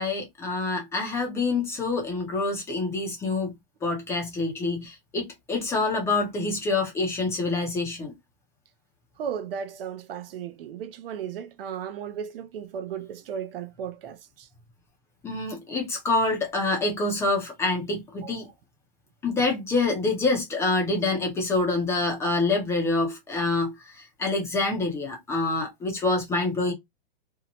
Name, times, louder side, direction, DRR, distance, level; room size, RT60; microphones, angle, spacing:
voice 1, 0.0-3.5 3.8-8.1 15.2-18.5 19.2-26.7, left 3 dB, 10° left, 0.5 m, -26 dB
voice 2, 9.2-14.5 18.2-18.3, right 8 dB, 70° right, 0.5 m, -35 dB
2.6 x 2.1 x 2.8 m
hypercardioid pair, 155°, 30 cm